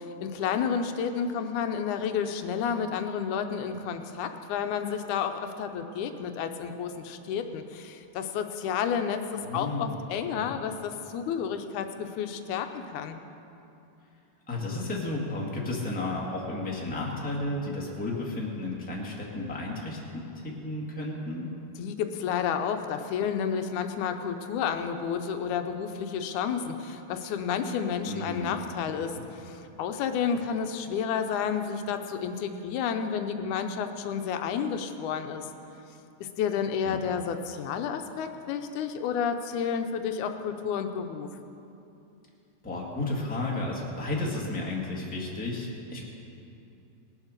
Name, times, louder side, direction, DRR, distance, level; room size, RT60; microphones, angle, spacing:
voice 1, 0.0-9.2 9.5-13.2 21.8-35.4 36.2-41.3, left 7 dB, 85° left, 7 dB, 2.2 m, -31 dB
voice 2, 9.4-10.0 10.3-10.5 14.5-21.5 28.0-28.6 29.1-29.2 36.8-37.0 42.6-46.0, left 2 dB, 5° left, -3 dB, 1.3 m, -33 dB
19.5 x 7.3 x 6.6 m, 2.8 s
omnidirectional pair, 3.4 m